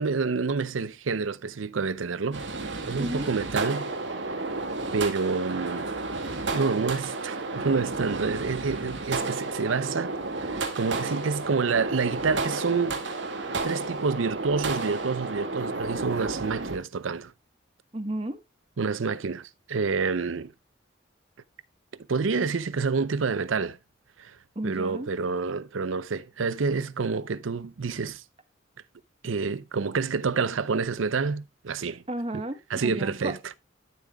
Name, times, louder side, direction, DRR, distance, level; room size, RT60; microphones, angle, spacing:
voice 1, 0.0-2.4 2.8-3.9 4.9-6.0 6.5-10.1 10.4-13.0 13.6-17.3 18.8-20.5 22.1-23.8 24.2-24.4 24.6-28.2 29.2-32.0 32.7-33.4, right 4 dB, 90° right, 0.6 m, -28 dB
sound 1, 2.3-16.8, right 3 dB, 70° right, 2.0 m, -32 dB
voice 2, 3.0-3.3 17.9-18.4 24.5-25.1 32.1-33.3, right 1 dB, 30° right, 1.2 m, -33 dB
12.5 x 7.4 x 2.3 m
head